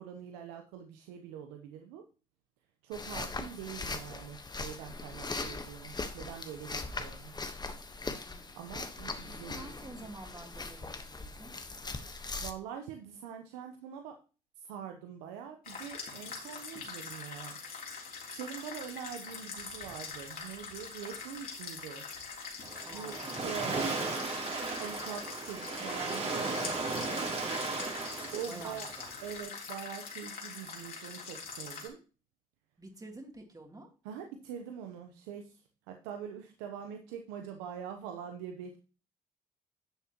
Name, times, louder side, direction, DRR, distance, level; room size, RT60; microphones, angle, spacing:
voice 1, 0.0-2.0 2.8-7.3 8.5-9.7 12.4-14.1 14.6-17.6 18.3-22.0 22.9-24.0 24.8-26.7 28.3-28.9 29.2-32.0 34.0-35.6 35.9-38.8, right 8 dB, 85° right, 5 dB, 0.9 m, -44 dB
sound 1, 2.9-12.5, left 3 dB, 25° left, 1.3 m, -40 dB
voice 2, 9.5-11.5 22.8-23.4 27.0-28.2 28.5-29.1 32.8-33.9, right 2 dB, 20° right, 2 dB, 3.1 m, -49 dB
sound 2, 15.6-31.9, left 5 dB, 60° left, 3.5 m, -44 dB
Waves surf, 22.6-29.4, right 3 dB, 40° right, 3.2 m, -36 dB
11.0 x 7.3 x 3.0 m, 0.35 s
hypercardioid pair, 55°, 17 cm